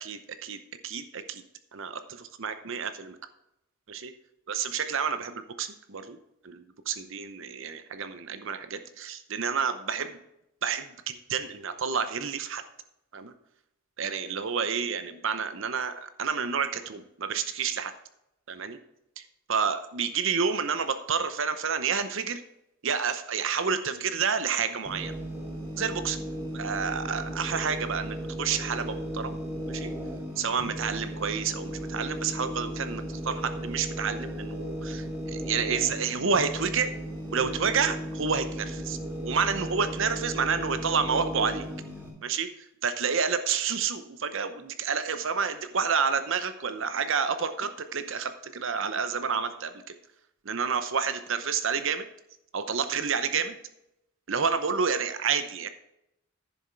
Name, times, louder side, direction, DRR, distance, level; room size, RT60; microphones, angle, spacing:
voice 1, 0.0-1.4 1.7-3.2 3.9-4.1 4.5-6.2 6.4-10.2 10.6-12.6 13.1-13.3 14.0-17.9 18.5-18.8 19.2-19.3 19.5-22.4 22.8-25.2 25.8-26.2 26.5-29.4 29.7-29.9 30.4-36.9 37.3-41.6 42.2-42.5 42.8-49.7 50.4-52.1 52.5-53.6 54.3-55.7, right 6 dB, 60° right, 10 dB, 0.7 m, -29 dB
sound 1, 24.9-42.1, equal, 10° right, 3.8 m, -36 dB
10.5 x 7.2 x 4.6 m, 0.85 s
head